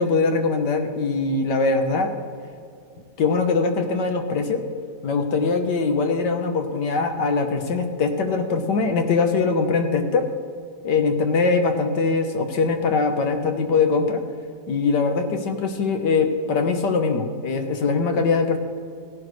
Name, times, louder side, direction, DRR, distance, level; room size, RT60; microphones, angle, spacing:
voice 1, 0.0-2.1 3.2-4.6 5.0-10.3 10.8-14.2 14.7-18.6, left 4 dB, 75° left, 5 dB, 1.7 m, -22 dB
17.0 x 11.0 x 3.2 m, 2.3 s
omnidirectional pair, 1.9 m